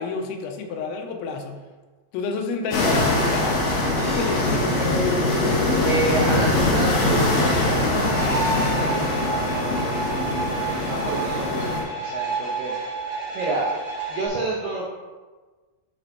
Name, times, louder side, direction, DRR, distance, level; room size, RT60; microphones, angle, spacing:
voice 1, 0.0-1.6 2.1-3.6 4.0-5.3, left 4 dB, 90° left, 4 dB, 3.1 m, -29 dB
sound 1, 2.7-11.8, left 2 dB, 75° left, 4.2 m, -22 dB
sound 2, 4.0-14.3, right 2 dB, 45° right, 2.8 m, -31 dB
voice 2, 5.9-12.7 13.3-13.7 14.1-14.9, right 2 dB, 85° right, -2 dB, 1.9 m, -30 dB
11.0 x 5.1 x 2.8 m, 1.3 s
omnidirectional pair, 5.2 m